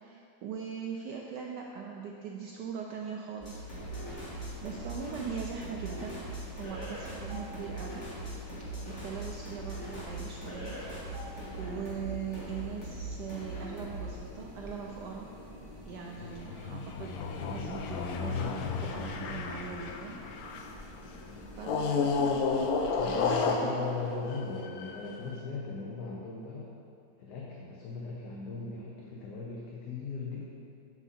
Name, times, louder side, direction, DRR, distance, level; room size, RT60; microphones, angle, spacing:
voice 1, 0.0-3.7 4.0-4.3 4.6-6.3 6.6-8.0 8.6-10.8 11.5-15.3 15.9-20.2 20.7-20.9 21.6-22.4 23.0-23.9, right 6 dB, 75° right, 0 dB, 1.0 m, -41 dB
sound 1, 3.4-14.2, right 1 dB, 35° left, 2.3 m, -41 dB
sound 2, 3.7-23.5, left 1 dB, 20° left, 1.0 m, -48 dB
sound 3, 16.2-20.8 21.6-25.2, left 4 dB, 80° left, 0.8 m, -32 dB
voice 2, 23.0-26.7 27.2-30.4, left 4 dB, 65° left, -3 dB, 1.2 m, -39 dB
7.2 x 6.8 x 4.2 m, 2.7 s
omnidirectional pair, 2.2 m